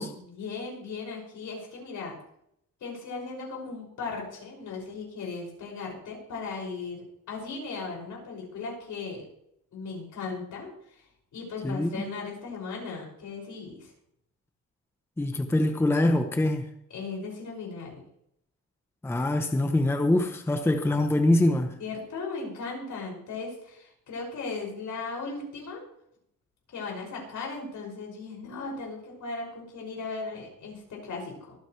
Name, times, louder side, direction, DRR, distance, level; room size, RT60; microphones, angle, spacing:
voice 1, 0.1-2.2 2.8-9.3 9.7-11.0 11.3-13.9 16.9-18.0 21.8-25.9 26.7-31.6, left 4 dB, 65° left, 6.2 m, -37 dB
voice 2, 15.2-16.7 19.0-21.7, left 1 dB, 10° left, 0.8 m, -24 dB
24.0 x 9.2 x 3.2 m
cardioid pair, 145°, 32 cm